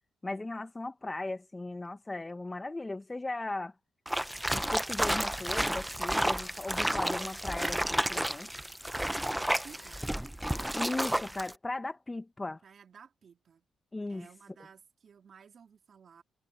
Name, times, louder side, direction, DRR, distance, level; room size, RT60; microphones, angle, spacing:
voice 1, 0.2-3.7 4.5-8.5 10.7-12.6 13.9-14.3, left 2 dB, 20° left, 1.2 m, -37 dB
sound 1, 4.1-11.5, right 1 dB, 5° right, 0.8 m, -31 dB
voice 2, 9.3-10.0 12.6-13.7 14.1-16.2, right 6 dB, 55° right, 3.0 m, -55 dB
supercardioid pair, 65°, 0 cm